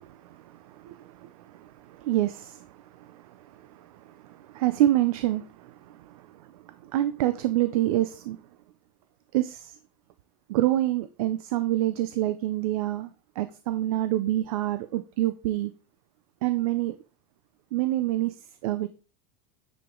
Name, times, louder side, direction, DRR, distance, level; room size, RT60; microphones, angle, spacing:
voice 1, 0.0-8.4 9.3-9.8 10.5-13.1 13.4-15.7 16.4-16.9 17.7-18.3 18.6-18.9, right 14 dB, 70° right, 11 dB, 0.6 m, -27 dB
9.1 x 5.0 x 3.8 m, 0.35 s
supercardioid pair, 180°, 19 cm